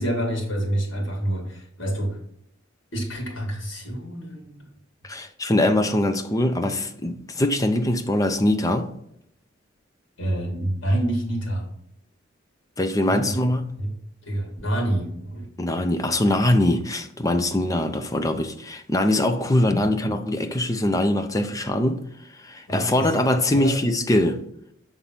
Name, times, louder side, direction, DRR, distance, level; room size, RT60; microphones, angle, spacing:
voice 1, 0.0-2.2 2.9-4.6 10.2-11.7 13.0-13.4 13.8-13.9 14.2-15.5 22.7-23.1 23.5-23.8, right 1 dB, 70° left, 2.1 m, -27 dB
voice 2, 5.0-8.9 12.8-13.7 15.6-22.0 22.4-24.4, left 1 dB, 15° left, 0.5 m, -22 dB
6.9 x 3.6 x 5.6 m
head